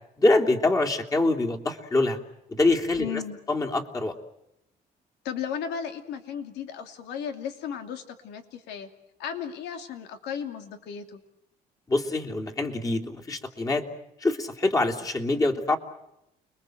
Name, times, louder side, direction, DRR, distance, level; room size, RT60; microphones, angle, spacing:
voice 1, 0.2-2.2 2.5-3.2 3.5-4.1 11.9-13.8 14.2-15.8, left 2 dB, 20° left, 1 dB, 3.3 m, -24 dB
voice 2, 3.0-3.4 5.2-8.9 9.2-11.2, left 8 dB, 85° left, 7 dB, 2.8 m, -35 dB
30.0 x 22.0 x 8.0 m, 0.85 s
cardioid pair, 110°, 17 cm